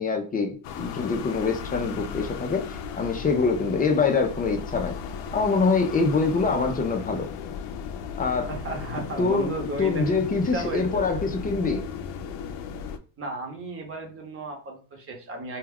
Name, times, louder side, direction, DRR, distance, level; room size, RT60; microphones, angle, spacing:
voice 1, 0.0-4.9 5.3-7.3 8.2-8.5 9.2-9.5 9.8-11.8, left 4 dB, 20° left, 4 dB, 0.4 m, -24 dB
sound 1, 0.6-13.0, left 7 dB, 75° left, 0.5 m, -36 dB
voice 2, 8.5-11.1 13.2-15.6, right 2 dB, 30° right, 2 dB, 0.9 m, -34 dB
2.2 x 2.2 x 3.4 m, 0.40 s
cardioid pair, 130°, 42 cm